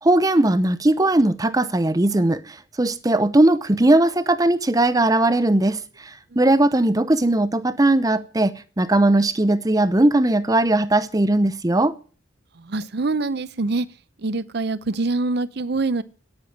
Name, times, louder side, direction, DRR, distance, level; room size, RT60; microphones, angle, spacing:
voice 1, 0.0-11.9, right 1 dB, 20° right, 0.7 m, -19 dB
voice 2, 12.6-13.9 14.2-16.0, right 3 dB, 55° right, 0.7 m, -25 dB
10.5 x 9.5 x 8.6 m
head